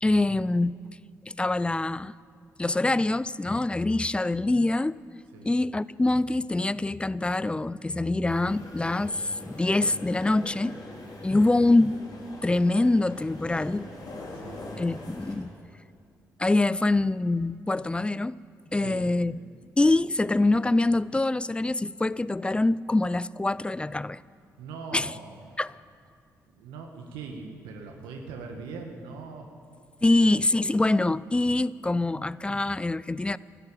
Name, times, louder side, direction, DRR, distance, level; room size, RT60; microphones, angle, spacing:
voice 1, 0.0-0.8 1.3-2.2 2.6-5.0 5.4-10.8 11.2-12.0 12.4-13.9 14.8-15.5 16.4-18.4 18.7-19.4 19.8-24.2 24.9-25.1 25.6-25.7 30.0-33.4, left 2 dB, 15° left, 0.4 m, -24 dB
sound 1, 8.2-15.4, left 2 dB, 55° left, 3.6 m, -42 dB
voice 2, 14.3-14.6 18.7-19.1 24.6-25.4 26.5-29.5 30.0-30.2, right 4 dB, 85° right, 1.3 m, -41 dB
13.0 x 11.0 x 8.8 m
hypercardioid pair, 50°, 8 cm